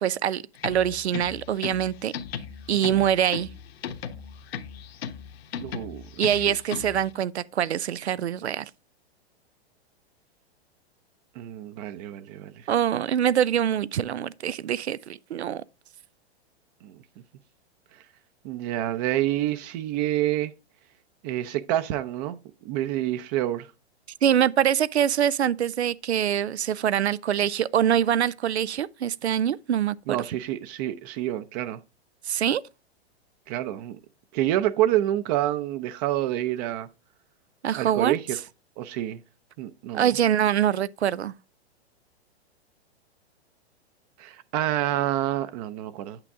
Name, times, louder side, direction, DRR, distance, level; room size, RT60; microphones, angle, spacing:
voice 1, 0.0-2.1 2.7-3.5 6.2-8.7 12.7-15.6 24.2-30.2 32.3-32.6 37.6-38.1 39.9-41.3, right 9 dB, 90° right, 0.5 m, -24 dB
sound 1, 0.6-7.1, left 7 dB, 65° left, 1.2 m, -37 dB
voice 2, 5.6-6.5 11.4-12.7 16.8-17.0 18.4-20.5 21.2-22.4 22.6-23.7 30.1-31.8 33.5-34.0 34.3-36.9 37.7-38.4 38.8-39.2 39.6-40.1 44.2-46.2, right 13 dB, 40° right, 0.6 m, -28 dB
8.9 x 7.0 x 3.5 m
hypercardioid pair, 115°, 32 cm